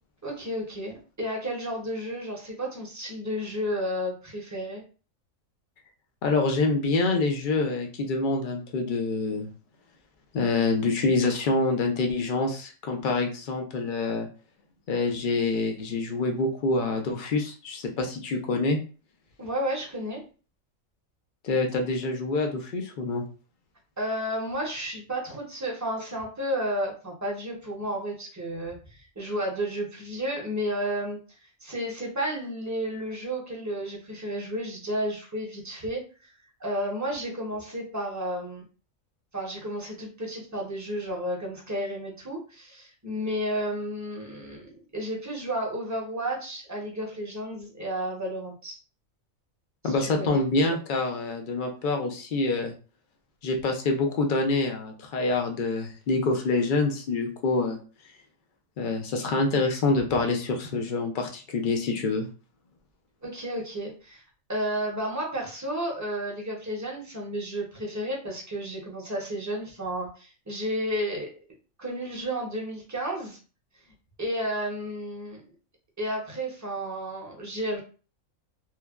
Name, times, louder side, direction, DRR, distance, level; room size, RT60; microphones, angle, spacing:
voice 1, 0.2-4.8 19.4-20.2 24.0-31.2 31.6-36.0 36.6-38.6 39.3-48.8 49.8-50.4 63.2-64.2 64.5-71.3 71.8-73.4 74.2-75.4 76.0-77.8, equal, 20° right, -2 dB, 0.5 m, -32 dB
voice 2, 6.2-9.5 10.3-14.3 14.9-18.8 21.4-23.2 49.8-52.7 53.4-57.8 58.8-62.3, left 3 dB, 70° left, 3 dB, 0.4 m, -26 dB
3.1 x 2.1 x 2.3 m, 0.37 s
omnidirectional pair, 1.4 m